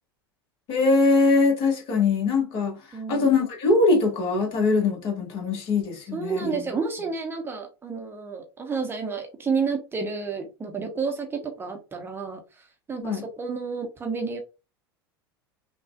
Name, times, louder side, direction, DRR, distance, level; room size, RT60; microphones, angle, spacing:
voice 1, 0.7-6.7 13.0-13.2, left 3 dB, 45° left, 1.5 m, -22 dB
voice 2, 2.9-3.3 6.1-14.4, right 5 dB, 15° right, 0.8 m, -30 dB
5.6 x 2.3 x 2.4 m
figure-of-eight pair, 80°, 13 cm